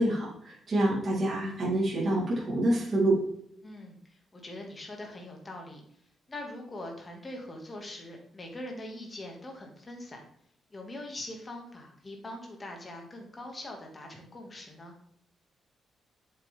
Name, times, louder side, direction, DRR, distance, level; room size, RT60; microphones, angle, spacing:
voice 1, 0.0-3.2, right 1 dB, 30° right, -7 dB, 4.1 m, -27 dB
voice 2, 3.6-5.8 6.3-10.2 10.7-14.9, left 1 dB, 20° left, 1 dB, 2.3 m, -42 dB
8.0 x 7.9 x 3.7 m, 0.70 s
cardioid pair, 145°, 0 cm